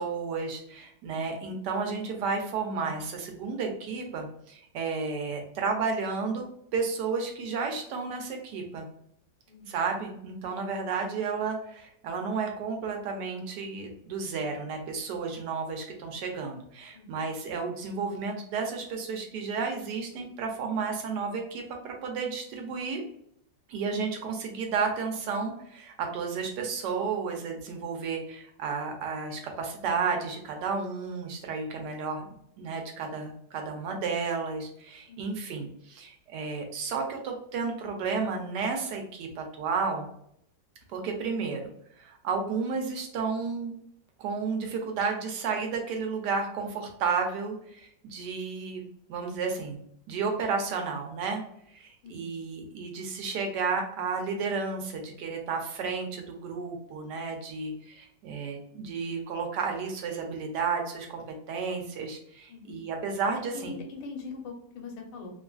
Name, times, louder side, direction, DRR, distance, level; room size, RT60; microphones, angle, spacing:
voice 1, 0.0-6.5 6.7-8.9 9.7-23.0 23.7-32.3 32.6-40.1 40.9-41.7 42.0-43.7 44.2-49.8 50.1-51.4 51.7-63.7, right 5 dB, 75° right, 3 dB, 1.2 m, -32 dB
voice 2, 9.5-9.8 16.9-17.2 35.1-35.4 52.0-52.3 62.5-62.8 63.5-65.3, left 4 dB, 80° left, 3 dB, 1.3 m, -42 dB
2.9 x 2.4 x 2.2 m, 0.70 s
omnidirectional pair, 1.9 m